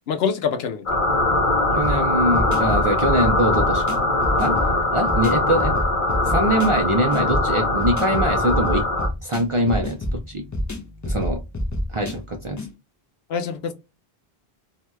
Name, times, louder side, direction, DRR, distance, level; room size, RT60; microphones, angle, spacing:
voice 1, 0.1-1.0 13.3-13.7, left 6 dB, 85° left, 0.8 m, -25 dB
sound 1, 0.9-9.1, left 2 dB, 55° left, 0.9 m, -21 dB
voice 2, 1.7-4.1 4.4-4.6 4.9-5.7 6.3-8.8 9.2-10.4 11.0-11.4 11.9-12.6, right 1 dB, 45° right, 0.4 m, -23 dB
sound 2, 1.8-12.7, left 1 dB, 25° left, 0.4 m, -29 dB
2.7 x 2.2 x 3.1 m
omnidirectional pair, 1.0 m